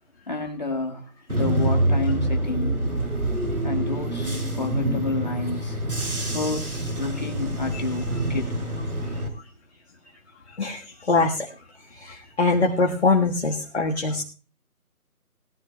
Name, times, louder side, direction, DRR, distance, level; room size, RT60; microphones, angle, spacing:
voice 1, 0.3-2.8 3.6-5.8 6.3-8.6, left 3 dB, 30° left, 1 dB, 1.7 m, -30 dB
Bus / Engine, 1.3-9.3, right 1 dB, 75° right, 4.3 m, -26 dB
voice 2, 10.5-14.2, left 3 dB, 45° left, 1 dB, 1.5 m, -24 dB
20.5 x 14.0 x 2.2 m, 0.38 s
figure-of-eight pair, 175°, 45 cm